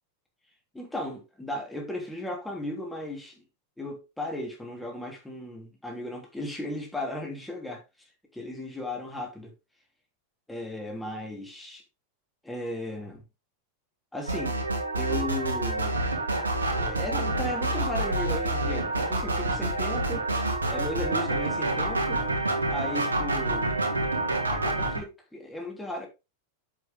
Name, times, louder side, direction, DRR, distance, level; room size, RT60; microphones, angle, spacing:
voice 1, 0.7-3.4 3.8-7.8 8.3-9.5 10.5-11.8 12.4-13.2 14.1-14.6 14.9-15.9 16.7-20.3 20.7-22.2 22.7-23.7 24.5-26.1, left 1 dB, 5° left, 3.3 m, -36 dB
sound 1, 14.3-25.0, right 2 dB, 75° right, 2.5 m, -28 dB
7.8 x 7.4 x 3.7 m
figure-of-eight pair, 90°, 0 cm